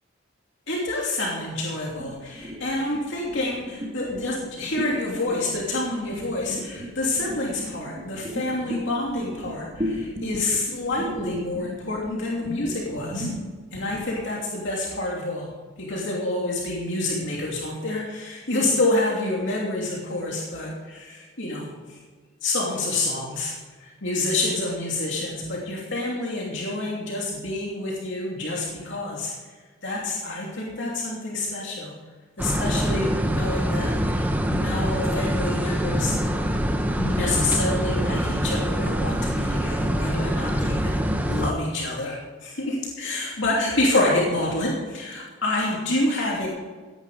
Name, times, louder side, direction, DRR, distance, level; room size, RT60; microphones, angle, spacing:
voice 1, 0.7-13.3 13.7-15.5 15.8-22.0 22.4-23.5 23.8-29.3 29.8-31.9 32.4-36.1 37.0-42.1 42.4-46.5, left 2 dB, 55° left, -3 dB, 2.9 m, -28 dB
sound 1, 2.0-14.2, equal, 25° right, 2.9 m, -35 dB
sound 2, 32.4-41.5, equal, 10° right, 0.9 m, -25 dB
16.5 x 10.5 x 5.0 m, 1.4 s
head